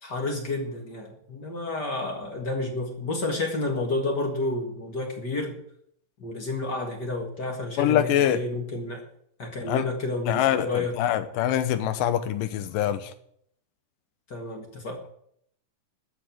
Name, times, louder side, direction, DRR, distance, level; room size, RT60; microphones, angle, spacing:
voice 1, 0.0-5.6 6.2-9.0 9.4-11.0 14.3-15.0, left 2 dB, 40° left, 2.0 m, -30 dB
voice 2, 7.8-8.4 9.6-9.9 10.3-13.1, left 11 dB, 85° left, 2.6 m, -24 dB
13.5 x 6.4 x 9.2 m
omnidirectional pair, 3.8 m